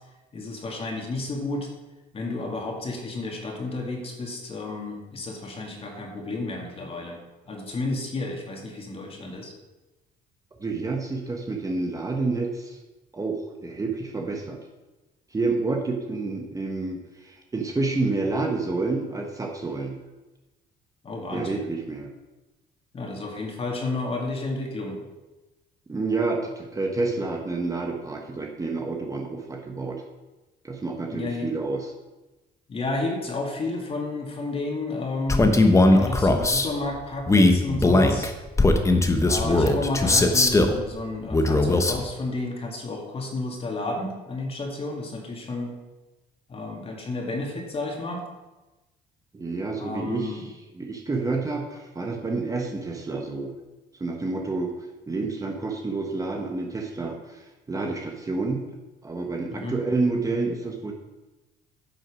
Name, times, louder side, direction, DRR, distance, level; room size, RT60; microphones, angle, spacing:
voice 1, 0.3-1.7 2.1-9.5 21.0-21.6 22.9-25.0 31.1-31.6 32.7-35.6 35.9-38.3 39.2-45.7 46.5-48.2 49.8-50.4 59.5-59.8, left 2 dB, 35° left, 1 dB, 2.5 m, -31 dB
voice 2, 10.6-12.8 13.1-14.6 15.3-20.0 21.3-22.1 25.9-30.0 30.6-31.9 49.3-50.5 50.7-53.5 54.0-54.7 55.1-58.7 59.0-60.9, right 3 dB, 20° right, 1 dB, 1.3 m, -29 dB
Male speech man speaking, 35.3-36.7 37.2-40.8 41.3-42.0, left 2 dB, 15° left, 1.1 m, -19 dB
10.0 x 6.4 x 6.3 m, 1.1 s
cardioid pair, 110°, 17 cm